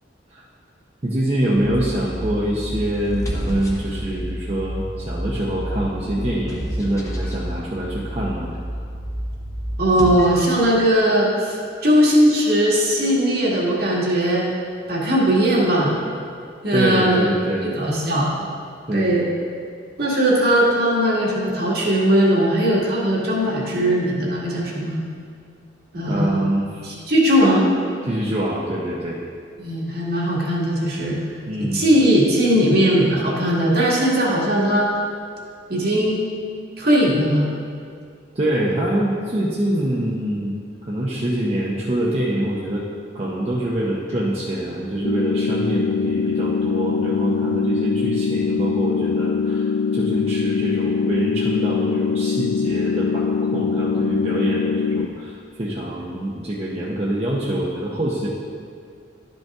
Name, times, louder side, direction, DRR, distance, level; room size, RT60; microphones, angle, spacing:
voice 1, 1.0-8.5 16.7-17.7 18.9-19.1 26.0-26.8 28.0-29.2 31.5-31.8 38.3-40.5 40.8-42.9 43.1-58.3, right 1 dB, 35° right, -5 dB, 0.8 m, -25 dB
sound 1, 1.5-9.8, equal, 40° left, 1.2 m, -30 dB
sound 2, 3.0-4.4 5.1-7.4 9.8-10.7, equal, 15° left, 0.9 m, -33 dB
voice 2, 9.8-14.5 14.9-16.0 16.6-17.3 17.6-18.3 18.9-19.2 20.0-25.0 25.9-26.5 26.8-27.7 29.6-31.2 31.6-34.9 35.7-36.3 36.8-37.5, equal, 55° right, -4 dB, 1.7 m, -19 dB
sound 3, 45.0-55.1, left 5 dB, 60° left, 0.3 m, -22 dB
12.0 x 5.3 x 3.6 m, 2.3 s
head